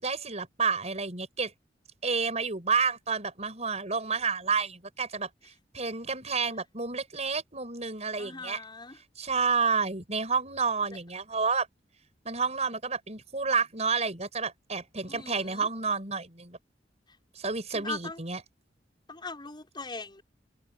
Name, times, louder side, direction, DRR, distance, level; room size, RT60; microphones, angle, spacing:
voice 1, 0.0-1.5 2.0-5.3 5.7-8.6 9.2-11.7 12.2-16.6 17.3-18.4, right 5 dB, 40° right, 6.6 m, -30 dB
voice 2, 8.2-9.0 15.1-15.7 17.7-18.2 19.1-20.2, left 3 dB, 25° left, 6.1 m, -40 dB
head